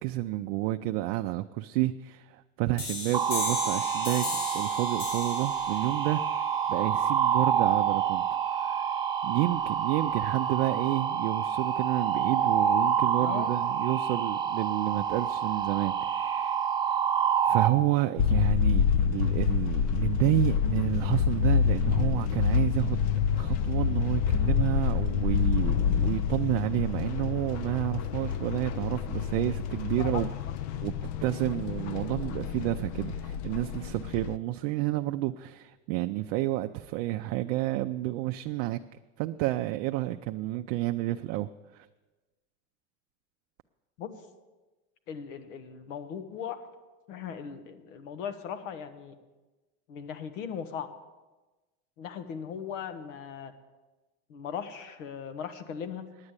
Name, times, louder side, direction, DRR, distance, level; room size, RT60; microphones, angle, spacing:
voice 1, 0.0-8.2 8.5-8.9 9.2-16.7 17.4-23.1 23.4-30.3 30.8-30.9 31.2-38.8 39.2-41.9, right 16 dB, 60° right, 6 dB, 0.5 m, -30 dB
sound 1, 2.8-8.2, left 3 dB, 70° left, 3.6 m, -37 dB
sound 2, 3.1-17.7, right 8 dB, 10° right, 1.0 m, -28 dB
voice 2, 13.2-13.5 30.0-30.3 44.0-44.1 45.1-46.6 47.1-49.1 49.9-50.9 52.0-53.5 54.3-56.1, left 7 dB, 85° left, 9 dB, 1.2 m, -38 dB
sound 3, 18.2-34.4, left 8 dB, 50° left, 0.4 m, -27 dB
9.8 x 8.7 x 8.2 m, 1.2 s
supercardioid pair, 135°, 38 cm